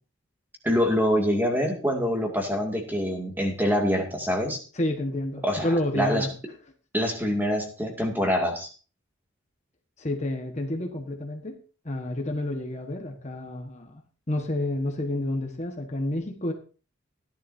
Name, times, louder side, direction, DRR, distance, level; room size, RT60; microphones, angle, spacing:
voice 1, 0.6-4.6 5.4-6.3 6.9-8.7, equal, 10° right, 2 dB, 2.2 m, -25 dB
voice 2, 4.7-6.3 10.0-11.6 11.8-14.0 14.3-16.5, left 1 dB, 35° left, 3 dB, 1.4 m, -29 dB
16.5 x 11.0 x 2.7 m, 0.36 s
head